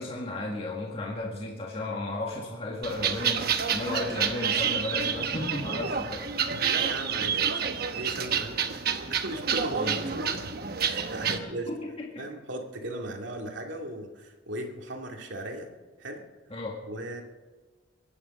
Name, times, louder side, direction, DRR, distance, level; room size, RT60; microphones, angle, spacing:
voice 1, 0.0-6.3 9.7-10.0 11.3-12.3 16.5-16.8, left 2 dB, 30° left, -2 dB, 1.9 m, -34 dB
sound 1, 2.8-11.4, right 7 dB, 50° right, 1.0 m, -29 dB
voice 2, 6.6-8.8 9.1-10.4 10.8-11.7 12.2-15.7 16.0-16.2 16.9-17.2, right 1 dB, 70° right, 2 dB, 2.3 m, -37 dB
23.5 x 10.0 x 5.5 m, 1.3 s
head